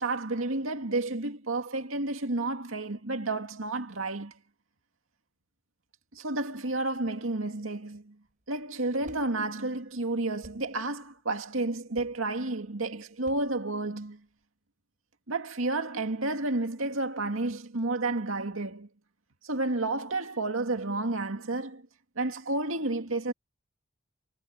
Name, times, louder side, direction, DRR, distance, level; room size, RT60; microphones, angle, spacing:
voice 1, 0.0-4.3 6.1-8.2 8.5-14.2 15.3-18.9 19.4-21.8 22.2-23.3, right 2 dB, 90° right, 2.3 m, -31 dB
sound 1, 8.2-14.4, right 1 dB, 40° right, 4.9 m, -56 dB
head